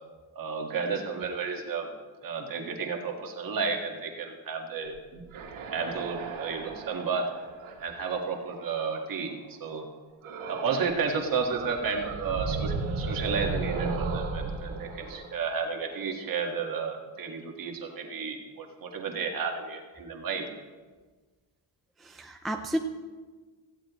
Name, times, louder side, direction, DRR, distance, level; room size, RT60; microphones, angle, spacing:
voice 1, 0.3-1.9 2.2-5.2 5.7-7.2 7.8-9.3 9.6-9.9 10.5-20.5, right 5 dB, 45° right, 2 dB, 1.8 m, -32 dB
sound 1, 5.0-9.1 10.2-11.0 11.3-16.1, right 4 dB, 80° right, 2.3 m, -35 dB
voice 2, 22.0-22.8, equal, ahead, 3 dB, 0.4 m, -32 dB
17.5 x 15.5 x 3.1 m, 1.4 s
cardioid pair, 175°, 48 cm